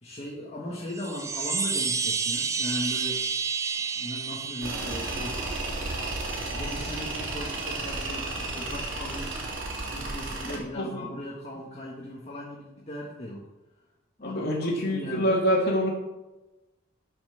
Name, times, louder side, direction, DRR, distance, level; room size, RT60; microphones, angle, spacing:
voice 1, 0.0-3.2 3.9-5.4 6.5-9.4 9.8-13.4 14.2-15.4, left 1 dB, 35° left, -4 dB, 1.6 m, -38 dB
Chime, 0.9-5.6, right 5 dB, 15° right, 0.5 m, -30 dB
Tools, 4.6-10.6, right 2 dB, 75° right, 2.9 m, -33 dB
voice 2, 10.5-11.1 14.2-15.9, equal, 50° left, -2 dB, 2.3 m, -26 dB
11.5 x 5.6 x 6.6 m, 1.1 s
head